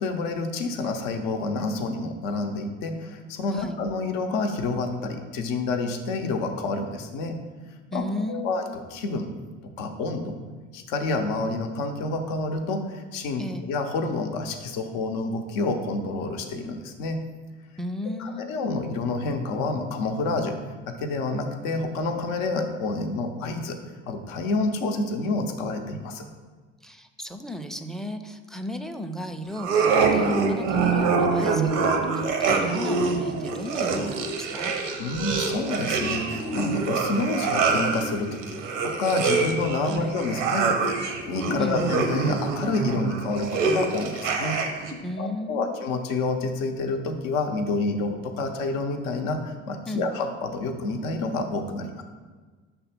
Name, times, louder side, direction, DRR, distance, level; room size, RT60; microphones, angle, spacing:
voice 1, 0.0-7.4 7.9-8.7 8.9-9.3 9.8-10.4 10.7-17.2 18.2-20.6 20.9-23.8 24.1-26.2 35.0-38.6 38.8-44.6 44.9-52.0, left 3 dB, 70° left, 5 dB, 0.8 m, -28 dB
voice 2, 3.5-3.8 7.9-8.5 13.4-13.7 17.8-18.5 26.8-34.7 39.8-40.2 41.6-41.8 45.0-45.8 49.9-50.1, left 1 dB, ahead, 8 dB, 0.4 m, -35 dB
sound 1, 29.6-44.9, right 4 dB, 85° right, 0.7 m, -25 dB
5.8 x 3.4 x 5.8 m, 1.4 s
hypercardioid pair, 60°, 35 cm